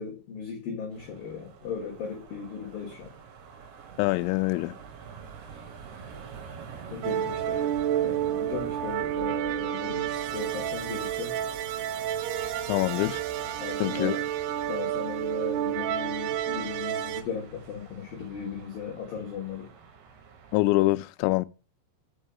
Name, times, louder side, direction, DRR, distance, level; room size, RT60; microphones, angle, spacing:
voice 1, 0.0-3.1 5.5-5.6 6.9-7.6 8.0-11.4 13.6-14.3 14.7-19.7, left 6 dB, 65° left, 2.5 m, -37 dB
sound 1, 0.9-20.6, right 6 dB, 65° right, 3.0 m, -46 dB
voice 2, 4.0-4.7 12.7-13.2 13.8-14.1 20.5-21.5, left 20 dB, 85° left, 3.2 m, -24 dB
sound 2, 7.0-17.2, right 11 dB, 85° right, 3.5 m, -30 dB
sound 3, 7.1-8.0 8.2-9.1 9.5-9.6 10.0-10.1 10.6-12.0 12.3-13.0, right 1 dB, 35° right, 1.7 m, -50 dB
6.9 x 5.5 x 6.4 m
omnidirectional pair, 5.8 m